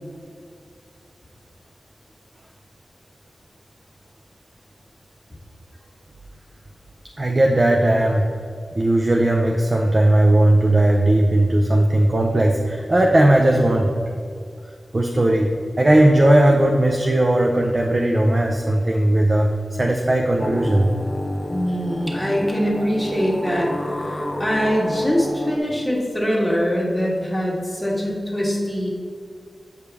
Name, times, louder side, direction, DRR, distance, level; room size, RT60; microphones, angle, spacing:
voice 1, 7.2-8.3 8.7-13.9 14.9-15.5 15.8-20.9, right 1 dB, 35° right, 1 dB, 0.5 m, -17 dB
sound 1, 20.4-25.6, left 1 dB, 20° left, 0.7 m, -29 dB
voice 2, 21.5-28.9, equal, 5° left, -4 dB, 1.6 m, -23 dB
8.2 x 5.1 x 3.4 m, 2.3 s
wide cardioid pair, 85°, 0 cm